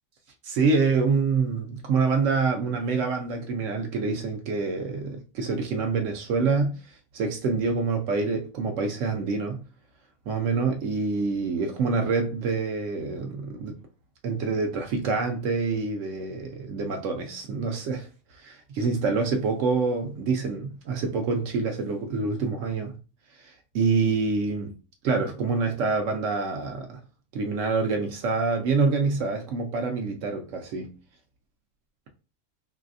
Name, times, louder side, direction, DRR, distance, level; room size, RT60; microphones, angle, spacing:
voice 1, 0.4-6.8 7.1-9.6 10.3-13.8 14.2-18.1 18.4-22.9 23.4-24.7 25.0-27.0 27.3-30.9, right 4 dB, 75° right, 0.9 m, -26 dB
3.2 x 2.7 x 2.5 m
omnidirectional pair, 1.4 m